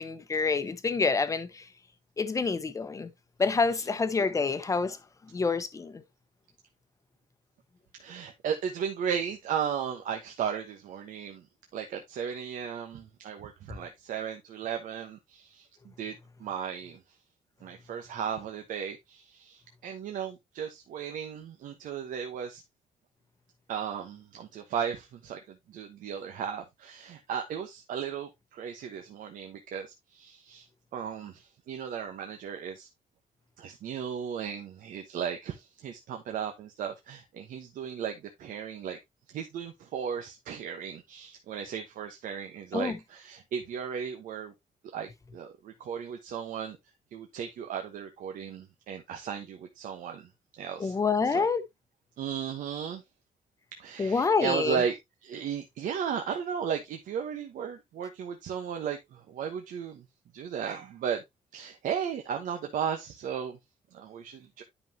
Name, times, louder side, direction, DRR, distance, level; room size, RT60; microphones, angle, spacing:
voice 1, 0.0-1.6 2.2-3.1 3.4-5.0 5.3-6.0 42.7-43.0 50.8-51.6 54.0-54.8, left 4 dB, 25° left, 0.9 m, -27 dB
voice 2, 8.0-11.4 11.7-17.0 17.6-22.6 23.7-30.7 30.9-32.9 33.6-39.0 39.3-44.5 44.9-46.8 47.1-50.3 50.6-50.9 51.2-51.5 52.2-53.0 53.8-55.0 55.2-60.0 60.3-61.2 61.5-63.6 63.9-64.6, right 8 dB, 75° right, 1.2 m, -35 dB
10.5 x 5.5 x 2.8 m
cardioid pair, 155°, 14 cm